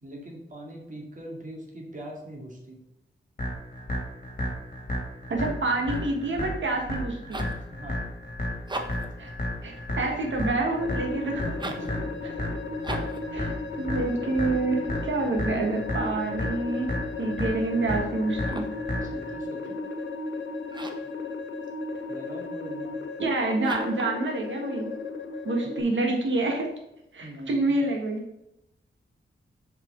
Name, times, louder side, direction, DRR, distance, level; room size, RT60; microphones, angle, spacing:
voice 1, 0.0-2.8 7.7-8.0 11.4-12.1 19.0-19.8 22.1-23.0 25.6-25.9 27.2-27.8, equal, 40° right, -1 dB, 2.3 m, -42 dB
sound 1, 3.4-19.4, left 1 dB, 45° left, 2.4 m, -33 dB
voice 2, 5.3-7.5 9.2-9.3 9.6-11.4 13.3-18.7 23.2-25.0 25.4-26.7 27.1-28.4, right 2 dB, 75° right, 1 dB, 1.6 m, -28 dB
sound 2, 7.0-7.6 8.6-9.2 11.5-11.9 12.8-13.3 18.3-18.9 20.7-21.1 23.6-24.1, right 2 dB, 25° right, 0.9 m, -37 dB
sound 3, 10.8-25.8, left 3 dB, 70° left, 1.0 m, -35 dB
7.7 x 4.8 x 3.8 m, 0.85 s
wide cardioid pair, 95°, 20 cm